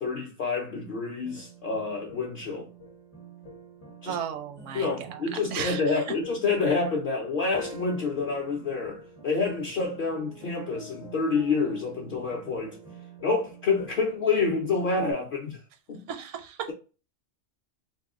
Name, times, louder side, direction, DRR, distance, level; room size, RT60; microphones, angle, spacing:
voice 1, 0.0-2.7 4.0-4.2 4.7-12.8 13.2-15.6 15.9-16.0, left 4 dB, 55° left, 0.7 m, -28 dB
sound 1, 1.2-15.1, right 1 dB, 20° left, 0.5 m, -46 dB
voice 2, 4.1-6.0 16.1-16.7, right 8 dB, 80° right, 0.9 m, -35 dB
3.0 x 2.1 x 3.5 m
omnidirectional pair, 1.2 m